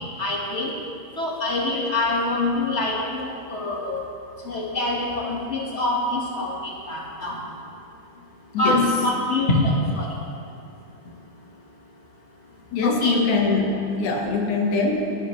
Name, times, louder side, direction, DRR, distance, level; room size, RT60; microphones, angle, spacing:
voice 1, 0.2-0.7 1.2-4.0 4.4-7.4 8.6-10.1 12.8-13.1, left 2 dB, 50° left, -3 dB, 0.8 m, -25 dB
voice 2, 8.5-8.9 12.7-15.2, left 3 dB, 70° left, 1 dB, 2.6 m, -23 dB
19.5 x 10.5 x 3.2 m, 2.5 s
omnidirectional pair, 3.8 m